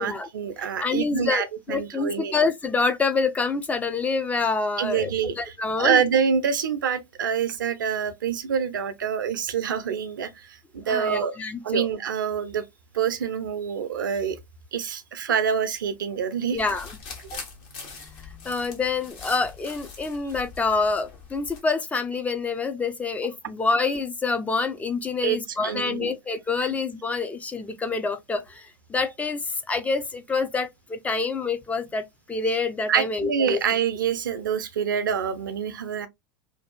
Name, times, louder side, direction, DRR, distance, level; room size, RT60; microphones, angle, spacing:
voice 1, 0.0-2.3 4.8-11.4 11.6-12.6 12.9-14.4 14.7-16.6 17.3-17.4 25.2-25.4 25.6-26.1 32.9-36.1, right 7 dB, 75° right, 0.5 m, -26 dB
voice 2, 0.6-5.1 5.4-6.0 10.9-11.9 16.5-16.9 18.4-33.6, left 4 dB, 15° left, 0.4 m, -27 dB
sound 1, 16.5-21.6, left 5 dB, 55° left, 1.1 m, -42 dB
2.6 x 2.3 x 2.2 m
hypercardioid pair, 90°, 11 cm